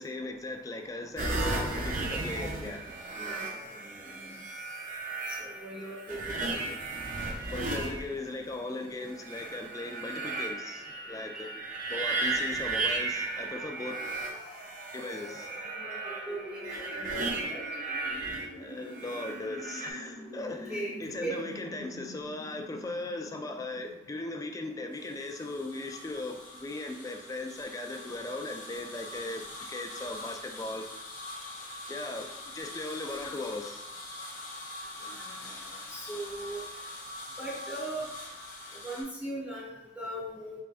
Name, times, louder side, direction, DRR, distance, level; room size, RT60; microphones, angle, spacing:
voice 1, 0.0-2.9 7.5-11.6 11.9-14.0 14.9-15.7 18.6-20.7 21.0-30.8 31.9-32.3 32.5-33.8, left 2 dB, 20° left, 4 dB, 0.3 m, -38 dB
sound 1, 1.2-8.6 9.1-18.5 18.9-19.9, right 3 dB, 45° right, 0.6 m, -35 dB
voice 2, 3.2-4.3 5.3-6.7 15.8-17.7 20.7-21.0 21.2-21.4 35.0-36.9 37.4-38.2 38.8-40.6, right 1 dB, 5° right, -7 dB, 0.9 m, -39 dB
sound 2, 13.1-24.9, left 1 dB, 90° right, 1.1 m, -47 dB
sound 3, 24.9-39.0, left 2 dB, 45° left, 1.1 m, -43 dB
3.4 x 3.3 x 2.5 m, 0.98 s
head